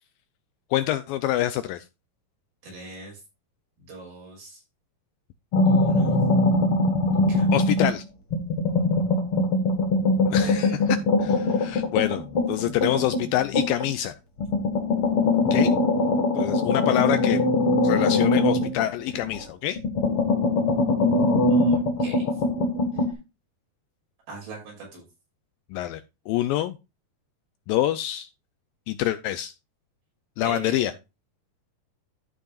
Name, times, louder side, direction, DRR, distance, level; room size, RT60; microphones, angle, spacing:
voice 1, 0.7-1.8 7.5-8.0 10.3-10.7 11.2-14.1 15.5-15.7 16.3-17.4 17.8-19.8 25.7-26.0 26.3-26.8 27.7-28.3 28.9-29.5 30.4-30.9, left 13 dB, 80° left, 12 dB, 2.1 m, -26 dB
voice 2, 2.6-3.2 3.8-4.6 5.6-6.2 7.3-7.6 10.3-10.8 21.5-22.4 22.9-23.0 24.3-25.0 30.4-30.9, right 3 dB, 70° right, -1 dB, 7.9 m, -41 dB
sound 1, 5.5-8.0 8.3-13.9 14.4-19.4 19.8-23.1, left 2 dB, 45° left, 2.1 m, -22 dB
14.0 x 6.4 x 2.4 m, 0.26 s
omnidirectional pair, 4.5 m